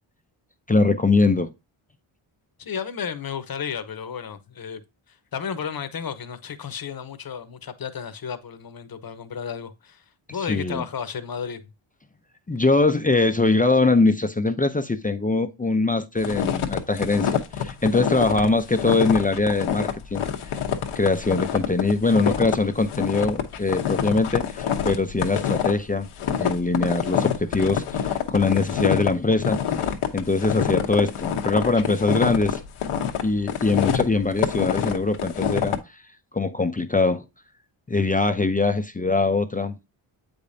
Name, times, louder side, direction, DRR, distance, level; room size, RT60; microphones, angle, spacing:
voice 1, 0.7-1.5 10.5-10.8 12.5-20.2 21.0-26.1 26.4-29.6 30.1-32.6 33.2-35.8 36.3-37.2 37.9-39.7, left 3 dB, 15° left, 0.6 m, -22 dB
voice 2, 2.6-4.8 5.1-10.0 10.3-11.6 18.3-18.5, left 7 dB, 45° left, 1.0 m, -33 dB
sound 1, 16.2-35.8, left 9 dB, 80° left, 1.1 m, -26 dB
8.0 x 5.1 x 2.7 m
cardioid pair, 90°, 49 cm